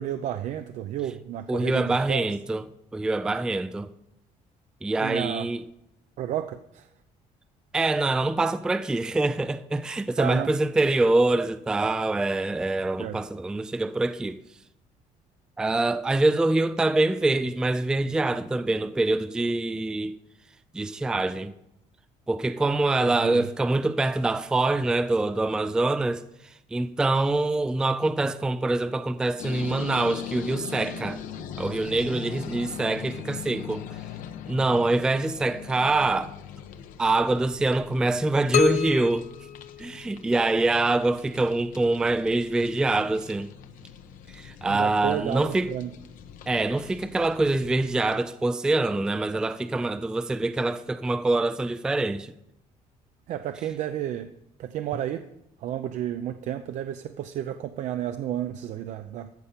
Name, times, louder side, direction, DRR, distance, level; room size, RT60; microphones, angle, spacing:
voice 1, 0.0-2.3 5.0-5.5 6.2-6.9 10.2-10.5 13.0-13.2 23.0-23.5 44.7-45.9 53.3-54.3 54.6-55.3 55.6-59.3, right 11 dB, 55° right, 0.6 m, -31 dB
voice 2, 1.5-2.7 2.9-3.9 4.8-5.6 7.7-14.4 15.6-20.1 20.7-21.5 22.3-31.2 31.6-33.9 34.5-36.3 37.0-39.3 39.8-43.5 44.3-45.7 46.5-52.3, right 2 dB, 5° right, 0.3 m, -25 dB
sound 1, 29.4-48.2, left 7 dB, 75° left, 1.0 m, -41 dB
sound 2, 38.5-40.4, left 10 dB, 55° left, 0.8 m, -28 dB
14.0 x 5.6 x 6.7 m
cardioid pair, 165°, 14 cm